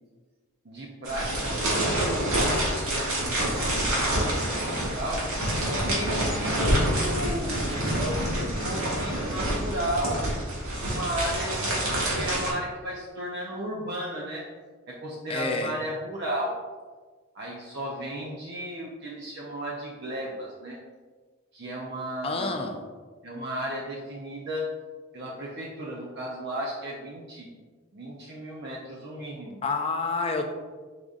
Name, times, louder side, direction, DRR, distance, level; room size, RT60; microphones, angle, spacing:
voice 1, 0.6-5.2 5.7-10.2 10.8-14.4 14.9-16.5 17.3-20.8 21.5-22.5 23.2-24.7 25.1-27.5 27.9-29.6, right 1 dB, 50° right, -3 dB, 0.5 m, -34 dB
sound 1, 1.0-12.5, right 1 dB, 80° right, 1.4 m, -27 dB
voice 2, 15.3-15.7 22.2-22.8 29.6-30.5, left 3 dB, 25° left, 4 dB, 0.4 m, -29 dB
5.0 x 3.8 x 2.4 m, 1.4 s
head